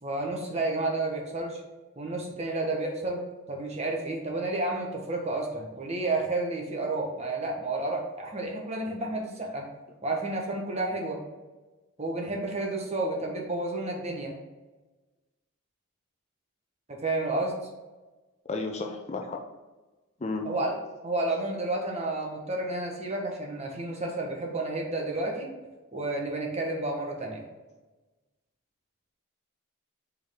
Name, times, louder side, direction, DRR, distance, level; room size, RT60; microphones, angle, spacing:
voice 1, 0.0-1.6 2.0-3.2 3.5-9.7 10.0-11.2 12.0-14.3 16.9-17.5 20.4-20.8 21.0-25.5 25.9-27.4, right 2 dB, 30° right, 0 dB, 1.2 m, -31 dB
voice 2, 18.5-19.4 20.2-20.5, left 3 dB, 30° left, 2 dB, 0.6 m, -32 dB
5.8 x 4.9 x 3.7 m, 1.2 s
head